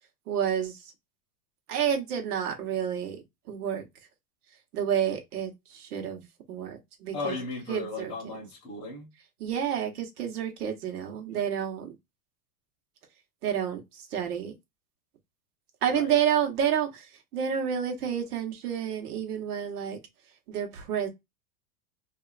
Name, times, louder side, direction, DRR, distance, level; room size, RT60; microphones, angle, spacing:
voice 1, 0.3-0.9 1.7-3.2 3.5-3.9 4.7-6.2 6.5-7.4 7.7-8.1 9.4-11.9 13.4-14.5 15.8-20.0 20.5-21.1, right 9 dB, 75° right, 1.3 m, -29 dB
voice 2, 7.1-9.1 11.3-11.4 15.9-16.2, left 3 dB, 10° left, 0.9 m, -36 dB
3.3 x 2.7 x 2.4 m
supercardioid pair, 170°, 46 cm